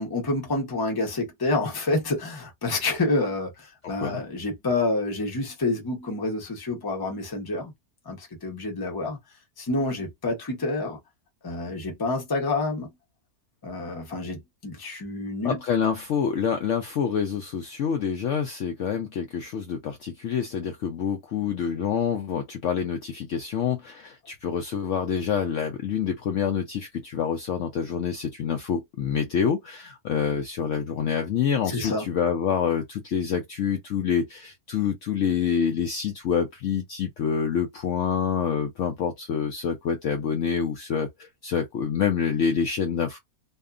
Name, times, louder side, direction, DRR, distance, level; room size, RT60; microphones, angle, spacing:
voice 1, 0.0-7.7 8.1-9.2 9.6-11.0 11.4-12.9 13.6-15.6 31.7-32.1, left 2 dB, 20° left, 0.7 m, -28 dB
voice 2, 3.8-4.2 15.4-43.2, left 7 dB, 65° left, 0.8 m, -27 dB
2.7 x 2.4 x 2.3 m
omnidirectional pair, 1.6 m